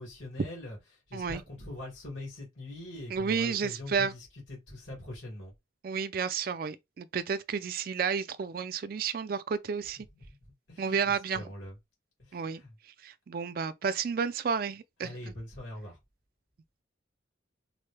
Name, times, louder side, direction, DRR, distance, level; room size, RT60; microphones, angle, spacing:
voice 1, 0.0-5.5 10.0-10.4 10.7-11.8 12.2-12.8 15.0-16.0, left 1 dB, 85° left, 2.2 m, -43 dB
voice 2, 3.1-4.1 5.8-10.1 10.8-11.4 12.3-12.6 13.0-15.1, right 6 dB, 50° right, 0.3 m, -31 dB
4.0 x 2.2 x 3.2 m
head